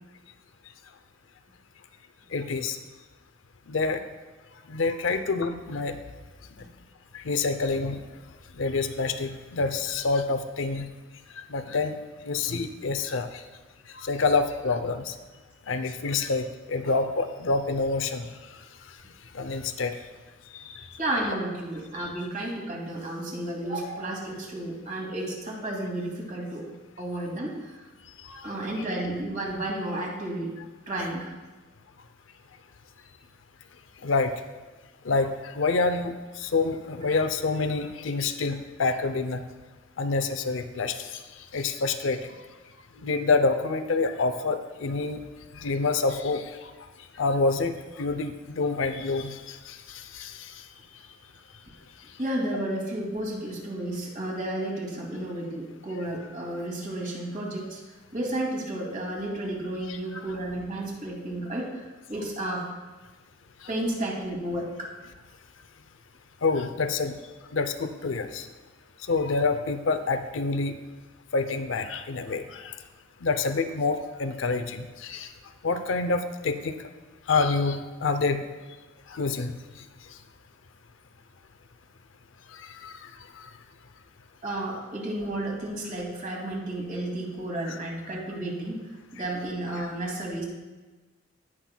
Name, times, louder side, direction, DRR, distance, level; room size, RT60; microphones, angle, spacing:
voice 1, 2.3-2.8 3.7-4.0 4.7-6.0 7.1-8.0 8.6-10.9 11.4-12.0 12.2-13.4 13.9-15.2 15.7-18.3 19.3-20.0 20.5-20.9 28.2-28.5 34.0-34.4 35.0-39.4 40.0-41.2 41.5-42.2 43.0-45.2 45.5-46.7 47.2-50.5 59.9-60.2 66.4-67.1 67.5-68.5 69.1-70.7 71.3-72.8 73.2-75.3 75.6-76.7 77.3-78.4 79.1-79.5 82.5-83.1 83.4-83.5 87.6-87.8 89.8-89.9, left 3 dB, 85° left, 8 dB, 0.6 m, -27 dB
voice 2, 21.0-26.6 27.0-27.8 28.4-30.5 30.9-31.3 52.2-57.8 58.1-62.6 63.7-64.9 84.4-88.8 89.1-90.4, right 1 dB, 45° right, -2 dB, 2.3 m, -32 dB
17.5 x 6.0 x 2.2 m, 1.2 s
head